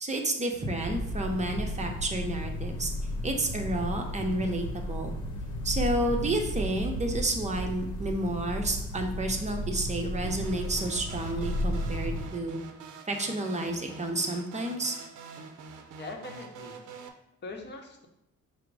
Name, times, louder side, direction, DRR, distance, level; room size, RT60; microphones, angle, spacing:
voice 1, 0.0-2.9 3.2-5.1 5.6-12.6 13.1-14.9, right 1 dB, 25° right, 3 dB, 0.7 m, -30 dB
sound 1, 0.8-12.3, equal, 85° left, 0.8 m, -34 dB
sound 2, 10.2-17.1, right 4 dB, 75° right, 0.6 m, -45 dB
voice 2, 15.9-16.8 17.4-18.1, left 3 dB, 35° left, 2 dB, 0.8 m, -41 dB
4.8 x 2.0 x 4.7 m, 0.84 s
cardioid pair, 90°, 30 cm